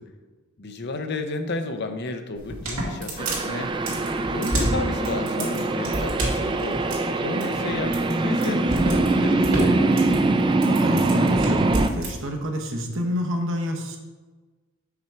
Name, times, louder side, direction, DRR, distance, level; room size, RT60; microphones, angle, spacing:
voice 1, 0.6-10.0, left 2 dB, 50° left, 7 dB, 0.6 m, -32 dB
sound 1, 2.4-12.1, right 1 dB, 85° right, 2.1 m, -29 dB
sound 2, 3.2-11.9, right 2 dB, 25° right, 0.3 m, -23 dB
voice 2, 10.7-14.0, equal, 65° right, 3 dB, 1.1 m, -28 dB
6.1 x 5.8 x 4.5 m, 1.3 s
head